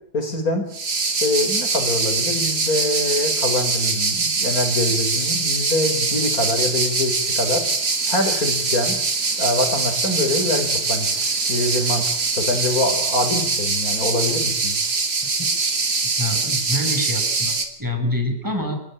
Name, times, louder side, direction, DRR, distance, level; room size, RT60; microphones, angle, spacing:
voice 1, 0.1-0.7 1.2-7.6 8.1-9.0 9.4-11.1 11.5-14.8, left 2 dB, 55° left, 6 dB, 5.5 m, -24 dB
sound 1, 0.7-17.7, right 4 dB, 70° right, 3.5 m, -23 dB
voice 2, 16.2-18.8, left 1 dB, 10° right, 5 dB, 6.1 m, -26 dB
28.5 x 16.5 x 9.1 m, 0.70 s
omnidirectional pair, 1.9 m